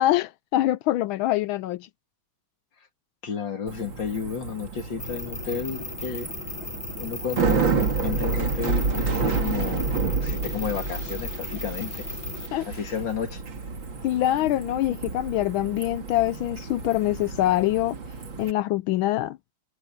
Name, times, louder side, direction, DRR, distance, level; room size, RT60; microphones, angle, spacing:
voice 1, 0.0-1.9 12.5-12.7 14.0-18.0 18.4-19.4, left 14 dB, 80° left, 1.3 m, -24 dB
voice 2, 3.2-6.3 7.0-9.9 10.2-12.1 12.7-13.4, left 6 dB, 60° left, 3.0 m, -32 dB
Bicycle, 3.7-18.5, right 4 dB, 65° right, 3.3 m, -30 dB
sound 1, 5.0-12.5, left 3 dB, 20° left, 1.6 m, -37 dB
omnidirectional pair, 2.3 m